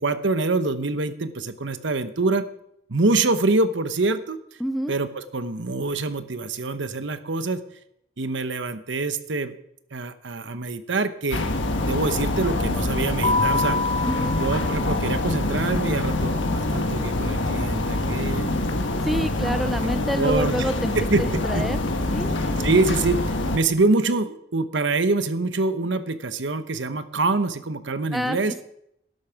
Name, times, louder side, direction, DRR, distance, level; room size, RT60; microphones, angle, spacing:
voice 1, 0.0-2.5 2.9-4.4 4.9-7.6 8.2-9.5 9.9-11.4 11.8-13.8 14.3-18.6 19.1-20.7 21.0-21.6 22.6-28.5, right 3 dB, 70° right, 11 dB, 1.0 m, -25 dB
voice 2, 4.6-4.9 14.0-14.4 19.0-20.9 21.2-21.8 22.1-22.7 28.1-28.6, equal, ahead, 10 dB, 0.5 m, -28 dB
sound 1, 11.3-23.6, left 2 dB, 70° left, 1.5 m, -25 dB
Keyboard (musical), 13.2-15.8, left 3 dB, 30° left, 1.1 m, -27 dB
12.0 x 11.0 x 5.9 m, 0.74 s
head